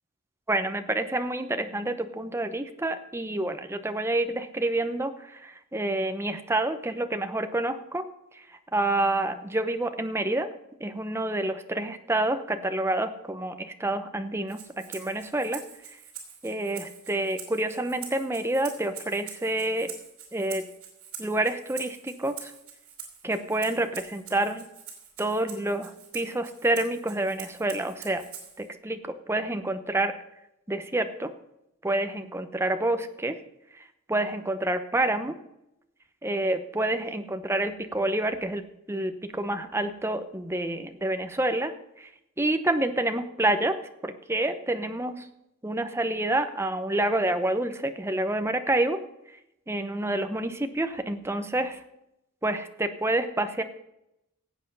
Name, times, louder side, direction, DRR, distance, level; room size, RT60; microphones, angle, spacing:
voice 1, 0.5-8.0 8.7-10.5 10.8-14.6 14.9-15.6 16.4-19.9 20.3-20.7 21.2-22.5 23.2-24.6 25.2-28.2 28.6-29.0 29.3-30.1 30.7-31.3 31.8-33.4 34.1-35.4 36.2-38.6 38.9-41.7 42.0-42.1 42.4-43.8 44.0-45.3 45.6-49.0 49.7-51.8 52.4-53.6, right 1 dB, 10° right, 8 dB, 0.8 m, -28 dB
Rattle (instrument), 14.5-28.7, right 7 dB, 80° right, 4.1 m, -45 dB
16.5 x 8.1 x 5.4 m, 0.85 s
head